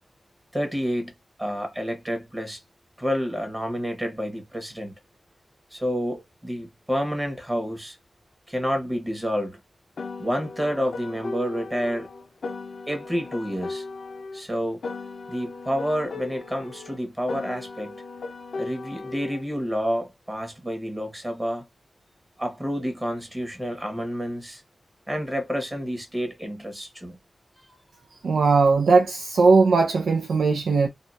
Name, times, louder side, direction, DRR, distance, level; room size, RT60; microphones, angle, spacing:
voice 1, 0.5-2.6 3.0-5.0 5.7-8.0 8.5-9.6 10.2-12.1 12.9-13.8 14.3-14.8 15.3-18.0 18.6-21.7 22.4-24.6 25.1-27.2 27.7-28.1, equal, 20° right, 1.3 m, -29 dB
Piano, 10.0-14.4 14.8-19.4, left 3 dB, 80° left, 0.6 m, -37 dB
voice 2, 28.2-30.9, right 4 dB, 85° right, 0.4 m, -19 dB
2.8 x 2.3 x 2.5 m
cardioid pair, 50°, 0 cm